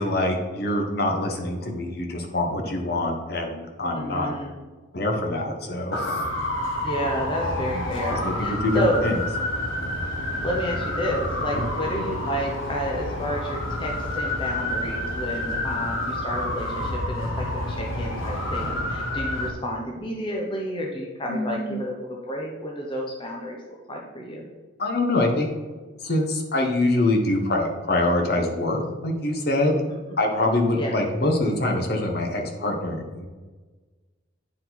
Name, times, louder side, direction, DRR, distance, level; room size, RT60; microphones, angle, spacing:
voice 1, 0.0-4.3 4.9-6.2 7.7-7.8 8.1-9.2 11.5-11.7 21.2-21.8 24.8-25.5 26.0-29.8 30.2-33.3, left 1 dB, 50° left, 2 dB, 1.0 m, -25 dB
voice 2, 3.9-4.5 6.8-9.0 10.4-24.5 30.7-30.9, equal, 25° left, -1 dB, 0.8 m, -30 dB
sound 1, 5.9-19.5, left 1 dB, 75° left, 1.1 m, -29 dB
9.5 x 4.7 x 4.1 m, 1.3 s
head